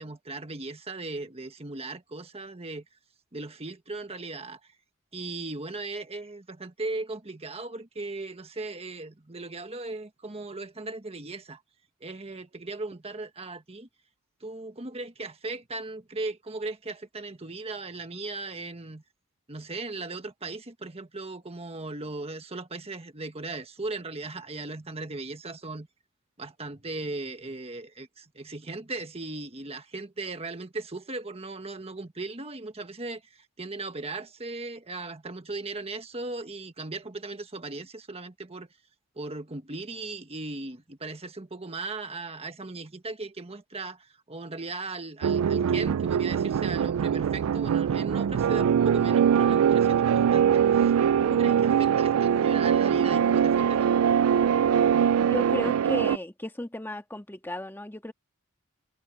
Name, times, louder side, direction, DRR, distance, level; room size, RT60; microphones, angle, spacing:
voice 1, 0.0-2.8 3.3-4.6 5.1-11.6 12.0-13.9 14.4-19.0 19.5-25.9 26.4-38.7 39.1-50.9 51.2-53.9, right 3 dB, 30° right, 1.5 m, -37 dB
sound 1, 45.2-56.2, right 8 dB, 80° right, 0.3 m, -22 dB
voice 2, 55.2-58.1, left 1 dB, 10° left, 1.5 m, -34 dB
head